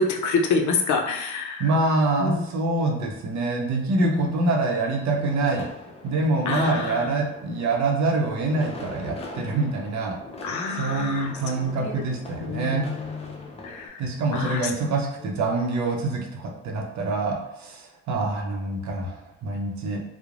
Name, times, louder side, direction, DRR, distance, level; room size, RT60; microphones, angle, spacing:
voice 1, 0.0-1.7 2.2-2.5 4.0-4.5 6.5-7.2 10.4-12.0 12.4-14.7, left 4 dB, 75° left, 3 dB, 0.5 m, -28 dB
voice 2, 1.6-5.7 6.0-10.2 10.7-12.9 14.0-20.0, right 2 dB, 70° right, 1 dB, 0.6 m, -25 dB
sound 1, 5.0-13.9, left 2 dB, 20° left, 0.5 m, -42 dB
3.0 x 2.0 x 2.4 m, 0.86 s
cardioid pair, 90°, 30 cm